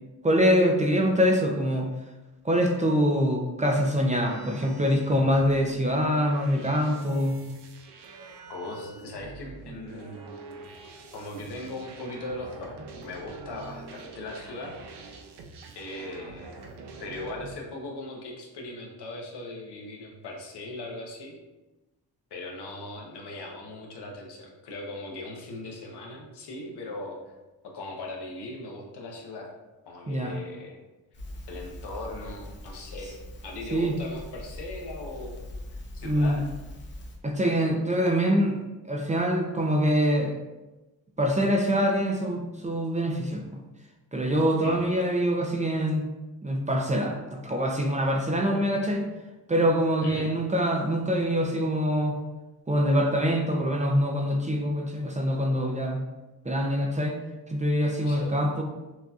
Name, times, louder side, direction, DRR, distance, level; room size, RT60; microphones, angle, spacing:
voice 1, 0.2-1.9 2.4-7.4 30.1-30.4 33.7-34.0 36.0-36.4 37.2-38.6 38.8-40.3 41.2-43.6 44.1-46.0 46.4-49.1 49.5-52.2 52.7-56.0 56.4-57.2 57.5-58.6, equal, 20° right, 1 dB, 0.5 m, -24 dB
sound 1, 4.2-17.6, right 3 dB, 80° right, 0.7 m, -45 dB
voice 2, 8.5-10.7 11.1-14.8 15.7-16.7 17.0-21.4 22.3-27.3 27.6-29.5 29.8-30.8 31.5-36.5 44.6-44.8 50.0-50.3 58.0-58.4, left 2 dB, 75° left, 0 dB, 1.0 m, -39 dB
Crackle, 31.1-37.2, left 1 dB, 30° left, 0.7 m, -42 dB
6.1 x 2.7 x 2.3 m, 1.1 s
cardioid pair, 105°, 40 cm